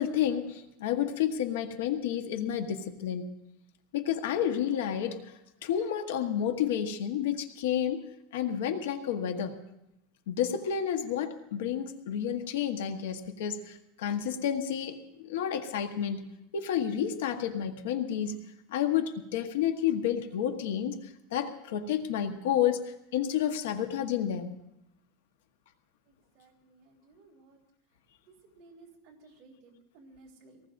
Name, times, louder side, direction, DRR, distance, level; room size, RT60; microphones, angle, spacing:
voice 1, 0.0-3.3 3.9-5.3 5.6-8.0 8.3-9.6 10.3-16.3 16.5-18.3 18.7-24.6, left 9 dB, 90° left, 7 dB, 1.3 m, -30 dB
voice 2, 26.1-27.6 28.3-30.6, right 3 dB, 35° right, -4 dB, 3.5 m, -57 dB
24.5 x 19.0 x 2.6 m, 0.83 s
supercardioid pair, 175°, 0 cm